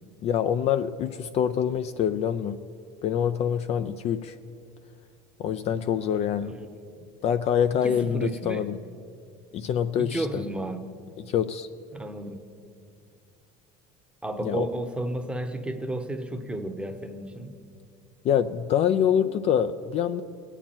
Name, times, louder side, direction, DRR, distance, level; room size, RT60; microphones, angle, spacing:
voice 1, 0.2-2.6 3.0-4.4 5.4-6.5 7.2-8.8 9.5-10.4 11.2-11.7 14.4-14.7 18.2-20.2, left 9 dB, 40° left, 11 dB, 0.4 m, -25 dB
voice 2, 7.7-8.6 10.0-10.8 11.9-12.4 14.2-17.5, right 1 dB, 5° right, 6 dB, 0.9 m, -32 dB
21.0 x 9.0 x 4.3 m, 2.5 s
supercardioid pair, 120°, 16 cm